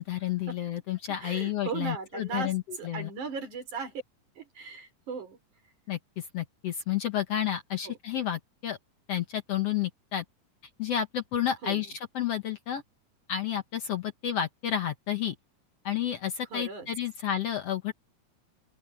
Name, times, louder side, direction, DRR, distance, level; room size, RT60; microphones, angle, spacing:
voice 1, 0.0-3.1 5.9-8.8 9.1-10.2 10.8-11.9 12.2-12.8 13.3-15.4 15.8-17.9, left 10 dB, 60° left, 1.9 m, -31 dB
voice 2, 1.1-4.0 4.4-5.4 7.8-8.0 11.6-11.9 16.5-16.9, right 5 dB, 65° right, 6.7 m, -37 dB
open air
omnidirectional pair, 3.7 m